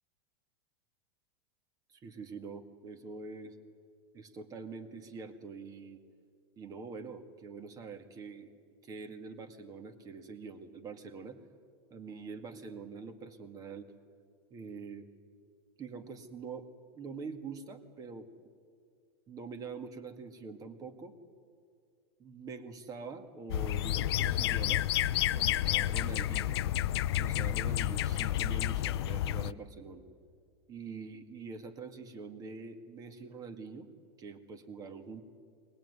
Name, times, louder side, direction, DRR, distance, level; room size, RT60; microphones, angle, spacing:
voice 1, 1.9-3.6 4.1-6.0 6.6-8.5 8.8-11.4 11.9-13.9 14.5-15.1 15.8-18.3 19.3-21.1 22.2-24.9 25.3-26.6 27.2-30.0 30.7-33.9 34.2-35.2, right 5 dB, 25° right, 8 dB, 2.1 m, -45 dB
sound 1, 23.5-29.5, left 13 dB, 75° left, 0.6 m, -30 dB
23.0 x 20.0 x 9.7 m, 2.1 s
supercardioid pair, 135°, 13 cm